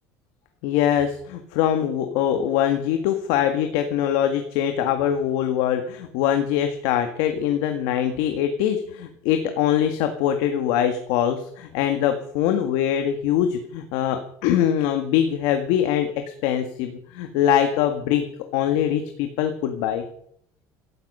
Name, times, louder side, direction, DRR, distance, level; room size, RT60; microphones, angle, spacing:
voice 1, 0.6-18.2 18.5-20.1, left 10 dB, 85° left, 6 dB, 1.8 m, -23 dB
17.0 x 13.5 x 5.6 m, 0.66 s
cardioid pair, 165°, 7 cm